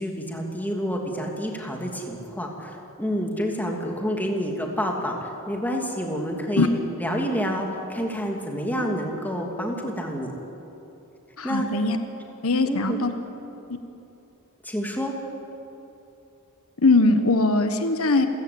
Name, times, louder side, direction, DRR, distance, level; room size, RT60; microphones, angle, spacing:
voice 1, 0.0-6.7 7.0-10.3 11.4-11.7 12.6-13.0 14.6-15.1, equal, 10° left, 1 dB, 2.8 m, -28 dB
voice 2, 11.4-12.0 12.4-13.1 16.8-18.3, left 3 dB, 75° left, 8 dB, 1.4 m, -20 dB
28.0 x 16.0 x 8.7 m, 2.9 s
head